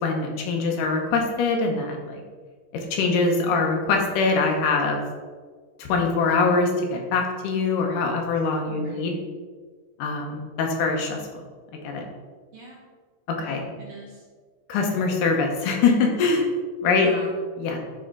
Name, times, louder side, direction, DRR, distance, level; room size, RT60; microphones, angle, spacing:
voice 1, 0.0-2.2 2.7-5.0 5.8-9.1 10.0-11.4 11.8-12.0 13.3-13.6 14.7-16.5 16.8-17.1 17.6-17.8, left 4 dB, 85° left, 2 dB, 2.5 m, -23 dB
voice 2, 8.7-9.1 12.5-12.8 13.4-14.2 16.9-17.4, right 2 dB, 65° right, -2 dB, 1.6 m, -41 dB
9.9 x 4.3 x 3.9 m, 1.5 s
omnidirectional pair, 3.6 m